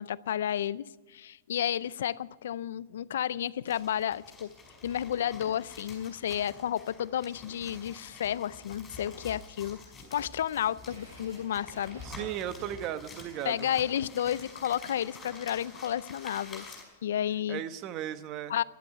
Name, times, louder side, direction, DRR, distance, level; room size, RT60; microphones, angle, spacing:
voice 1, 0.0-4.5 4.8-9.8 10.1-12.0 13.5-16.6 17.0-17.6 18.5-18.6, left 10 dB, 75° left, 20 dB, 0.4 m, -31 dB
sound 1, 3.7-16.8, left 3 dB, 15° left, 5.6 m, -48 dB
sound 2, 10.8-16.3, right 2 dB, 85° right, 6.2 m, -53 dB
voice 2, 12.0-13.7 17.5-18.5, right 11 dB, 40° right, 12 dB, 1.0 m, -36 dB
12.0 x 11.5 x 9.2 m, 1.2 s
hypercardioid pair, 125°, 0 cm